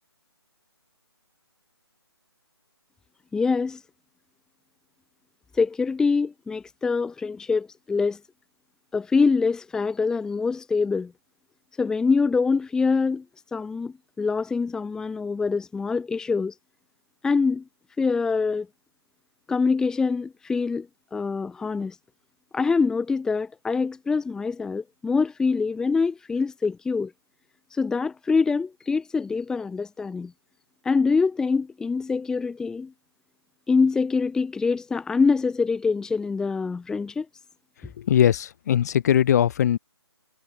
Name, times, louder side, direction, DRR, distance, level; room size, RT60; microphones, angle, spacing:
voice 1, 3.3-3.8 5.5-8.2 8.9-11.1 11.8-13.2 13.5-16.5 17.2-17.6 18.0-18.7 19.5-22.0 22.5-27.1 27.7-30.3 30.8-32.9 33.7-37.3, left 4 dB, 5° left, 2.1 m, -24 dB
voice 2, 38.1-39.8, left 10 dB, 40° left, 3.9 m, -20 dB
figure-of-eight pair, 155°, 14 cm